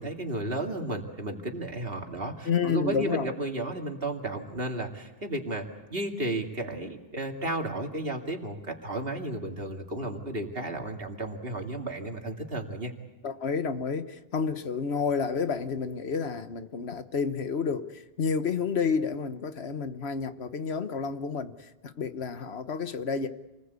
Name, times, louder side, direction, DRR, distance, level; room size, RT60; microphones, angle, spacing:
voice 1, 0.0-12.9, right 2 dB, 65° right, 2.8 m, -33 dB
voice 2, 2.4-3.3 13.2-23.3, left 5 dB, 85° left, 1.4 m, -30 dB
28.5 x 20.0 x 8.3 m
omnidirectional pair, 1.1 m